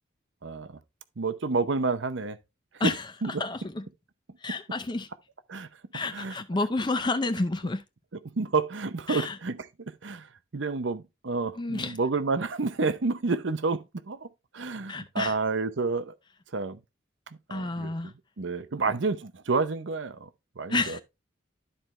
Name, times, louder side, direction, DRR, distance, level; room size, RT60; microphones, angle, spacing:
voice 1, 1.2-2.4 2.8-2.9 3.2-3.4 4.5-4.6 5.5-5.7 6.1-6.4 8.4-10.3 10.5-14.3 14.5-16.1 16.5-16.8 17.5-20.3 20.6-21.0, right 4 dB, 75° right, 0.7 m, -29 dB
voice 2, 3.4-3.8 4.4-5.1 5.9-7.8 9.1-9.4 11.6-12.0 14.9-15.4 17.5-18.1 20.7-21.0, left 2 dB, 25° left, 0.5 m, -29 dB
12.5 x 4.5 x 3.2 m
head